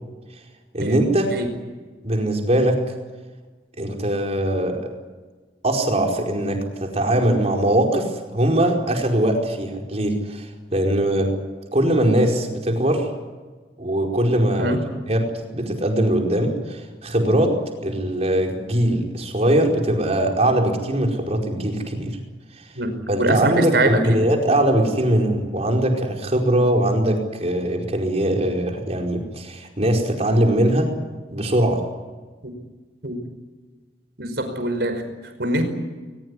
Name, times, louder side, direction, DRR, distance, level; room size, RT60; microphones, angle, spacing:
voice 1, 0.7-1.3 2.0-2.8 3.8-4.9 5.6-10.5 10.7-11.3 11.7-13.1 13.8-14.8 15.1-22.1 23.1-30.9 31.3-31.8, right 1 dB, 40° right, 1 dB, 4.8 m, -21 dB
voice 2, 22.8-24.2 32.4-32.5 33.0-33.2 34.2-35.7, right 1 dB, 70° right, 7 dB, 5.3 m, -24 dB
22.0 x 21.0 x 9.9 m, 1.3 s
head